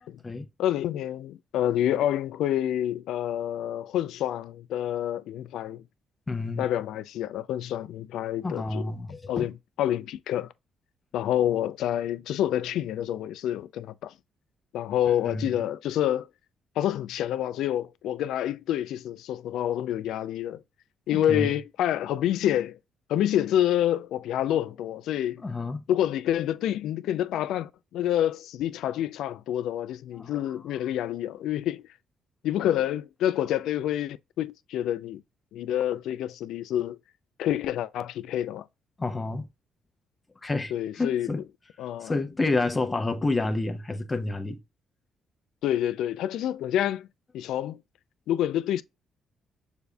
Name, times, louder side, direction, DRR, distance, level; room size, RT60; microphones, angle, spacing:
voice 1, 0.6-5.8 6.6-8.9 9.3-9.5 9.8-10.5 11.1-14.1 14.7-16.3 16.8-20.6 21.1-22.8 23.1-25.4 25.9-31.9 32.4-35.2 35.5-37.0 37.4-38.6 40.7-41.4 41.8-42.1 45.6-47.1 47.3-47.8 48.3-48.8, left 11 dB, 85° left, 0.3 m, -28 dB
voice 2, 6.3-6.7 8.4-9.5 15.2-15.6 21.1-21.5 25.4-25.8 30.1-30.3 39.0-39.5 40.4-41.4 42.0-44.6, left 3 dB, 25° left, 0.8 m, -29 dB
6.8 x 2.6 x 2.2 m
cardioid pair, 90°, 0 cm